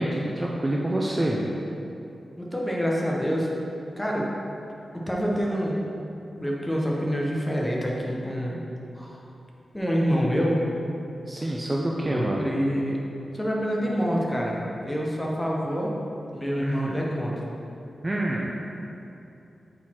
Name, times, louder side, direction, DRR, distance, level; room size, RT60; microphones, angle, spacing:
voice 1, 0.0-1.4 11.3-12.5 16.6-17.0 18.0-18.6, right 1 dB, 20° right, -2 dB, 0.4 m, -27 dB
voice 2, 2.4-3.5 4.0-4.3 5.1-5.8 6.4-8.6 9.0-9.2 9.7-10.7 12.1-13.0 13.3-15.9 16.3-17.4, equal, 10° left, -3 dB, 0.8 m, -26 dB
6.4 x 4.0 x 4.3 m, 2.8 s
wide cardioid pair, 145°, 0 cm